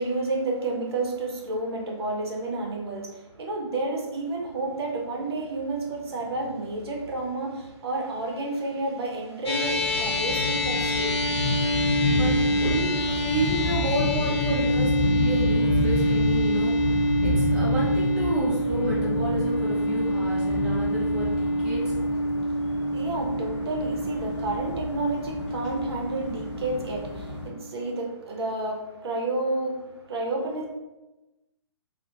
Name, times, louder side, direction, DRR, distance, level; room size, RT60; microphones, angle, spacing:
voice 1, 0.0-11.2 22.3-30.7, right 2 dB, 55° right, 0 dB, 0.6 m, -31 dB
sound 1, 9.5-28.0, equal, 60° left, 0.7 m, -27 dB
sound 2, 9.7-27.5, left 2 dB, 30° left, 0.9 m, -30 dB
voice 2, 12.1-21.9 22.3-22.4, right 1 dB, 5° right, -8 dB, 0.5 m, -31 dB
2.4 x 2.0 x 2.8 m, 1.0 s
figure-of-eight pair, 130°, 16 cm